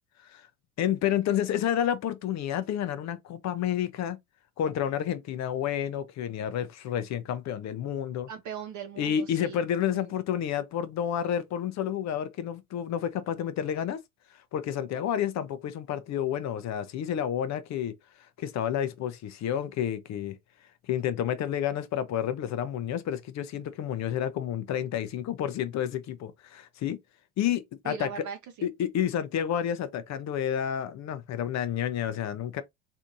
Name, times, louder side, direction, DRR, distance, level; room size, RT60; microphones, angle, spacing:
voice 1, 0.8-4.2 4.6-8.3 9.0-14.0 14.5-17.9 18.4-20.4 20.9-27.0 27.4-28.3 28.6-32.6, left 10 dB, 35° left, 0.5 m, -30 dB
voice 2, 8.3-10.1 27.8-28.7, right 7 dB, 40° right, 0.6 m, -40 dB
3.4 x 2.7 x 2.6 m
hypercardioid pair, 75°, 48 cm